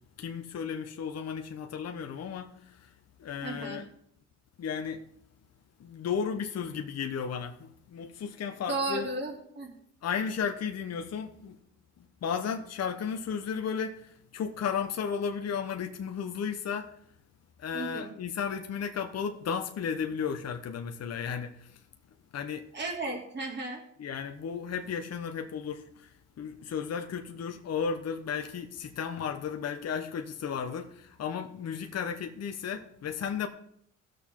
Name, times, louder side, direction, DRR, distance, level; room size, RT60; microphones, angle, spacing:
voice 1, 0.2-2.9 3.2-3.8 4.6-5.0 5.8-9.1 10.0-11.6 12.2-16.9 17.6-21.8 22.3-22.7 24.0-33.5, left 7 dB, 55° left, 1.1 m, -34 dB
voice 2, 3.4-3.8 8.7-9.7 17.7-18.1 22.7-23.8, right 2 dB, 35° right, 3.2 m, -34 dB
17.5 x 6.8 x 3.8 m
cardioid pair, 90°, 30 cm